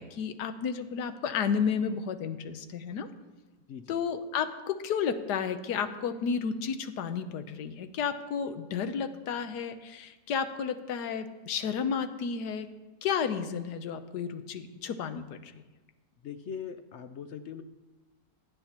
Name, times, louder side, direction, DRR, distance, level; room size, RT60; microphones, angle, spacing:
voice 1, 0.0-3.1 3.9-12.7 13.0-15.5, left 6 dB, 90° left, 10 dB, 1.4 m, -32 dB
voice 2, 3.7-4.0 16.2-17.6, left 7 dB, 65° left, 10 dB, 0.7 m, -41 dB
17.0 x 11.0 x 2.9 m, 1.2 s
omnidirectional pair, 1.7 m